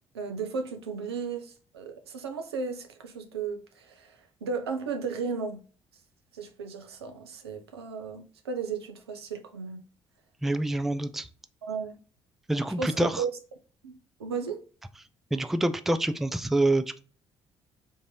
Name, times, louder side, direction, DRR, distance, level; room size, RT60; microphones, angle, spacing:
voice 1, 0.1-5.6 6.3-9.8 11.6-12.0 12.8-13.3 13.8-13.9 14.2-14.6, right 5 dB, 80° right, 0.5 m, -35 dB
voice 2, 10.4-11.3 12.5-13.3 15.3-17.0, right 1 dB, ahead, 0.3 m, -26 dB
3.7 x 2.6 x 3.1 m
figure-of-eight pair, 45°, 13 cm